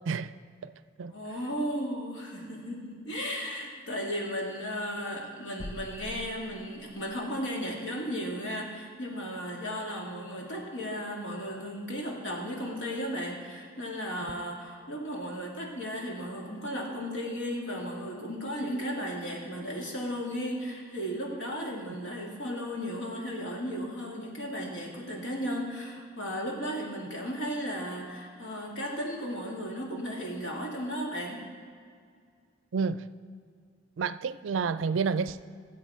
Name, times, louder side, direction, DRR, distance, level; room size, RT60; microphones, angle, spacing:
voice 1, 0.1-0.4 0.6-0.7 1.0-1.1 32.7-33.1 34.0-35.4, right 5 dB, 85° right, 15 dB, 0.4 m, -29 dB
voice 2, 1.1-31.4, equal, 80° left, -2 dB, 2.1 m, -35 dB
sound 1, 5.6-7.2, left 1 dB, 55° left, 0.6 m, -44 dB
16.5 x 7.7 x 3.6 m, 2.1 s
head